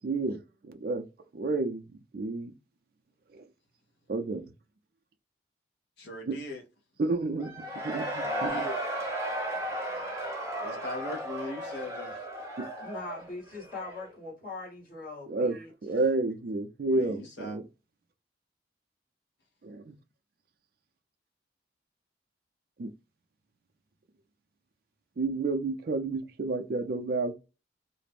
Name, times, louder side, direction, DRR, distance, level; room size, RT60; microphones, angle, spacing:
voice 1, 0.0-1.1 1.3-1.8 2.1-2.6 3.3-3.5 4.1-4.5 6.3-6.4 7.0-8.6 12.6-12.7 15.3-17.7 19.6-19.9 22.8-22.9 25.2-27.3, right 3 dB, 55° right, 0.4 m, -31 dB
voice 2, 6.0-6.6 8.2-8.8 10.6-12.2 16.9-17.6, left 1 dB, 65° left, 0.6 m, -39 dB
Cheering / Crowd, 7.4-14.1, right 1 dB, 15° right, 0.7 m, -35 dB
voice 3, 12.8-15.7, left 3 dB, 45° left, 1.2 m, -41 dB
2.4 x 2.0 x 3.3 m
head